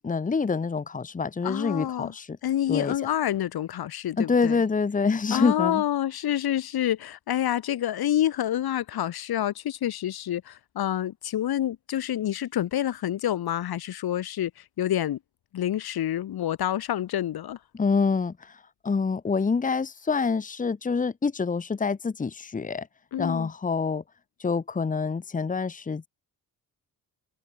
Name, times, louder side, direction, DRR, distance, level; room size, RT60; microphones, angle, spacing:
voice 1, 0.0-2.4 2.7-2.9 4.2-5.8 17.8-18.5 18.8-22.9 23.2-24.0 24.4-26.1, left 5 dB, 20° left, 1.5 m, -26 dB
voice 2, 1.4-2.1 2.4-4.6 5.3-15.2 15.5-17.6 23.1-23.5, left 11 dB, 75° left, 2.8 m, -28 dB
wide cardioid pair, 180°, 38 cm